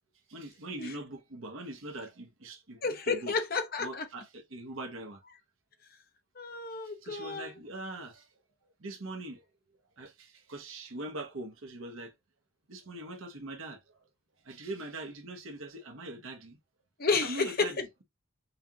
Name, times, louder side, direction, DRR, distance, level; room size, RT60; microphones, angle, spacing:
voice 1, 0.3-3.3 3.8-5.2 7.0-8.2 8.8-9.4 10.0-12.1 12.7-13.8 14.5-16.6 17.2-17.8, right 2 dB, 75° right, 1.0 m, -42 dB
voice 2, 2.8-4.0 6.4-7.6 17.0-17.7, left 4 dB, 45° left, 0.8 m, -31 dB
5.5 x 2.4 x 2.8 m
head